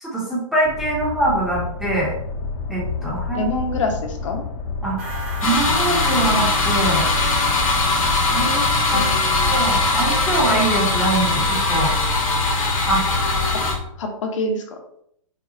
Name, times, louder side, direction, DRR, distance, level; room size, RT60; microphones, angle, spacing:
voice 1, 0.0-2.1 2.7-3.5 4.8-5.0 5.4-7.1 8.3-8.6 8.9-9.0 9.4-12.0 12.9-13.0, right 2 dB, ahead, -5 dB, 0.8 m, -23 dB
sound 1, 0.6-13.8, left 4 dB, 30° left, 0.4 m, -29 dB
voice 2, 3.3-4.4 8.9-9.6 13.5-13.6 14.0-14.8, left 2 dB, 65° left, 3 dB, 0.9 m, -26 dB
sound 2, 5.0-9.5, right 2 dB, 30° right, 1.1 m, -35 dB
sound 3, 5.4-13.7, left 3 dB, 85° left, 1.4 m, -21 dB
5.2 x 2.3 x 2.8 m, 0.70 s
hypercardioid pair, 150°, 17 cm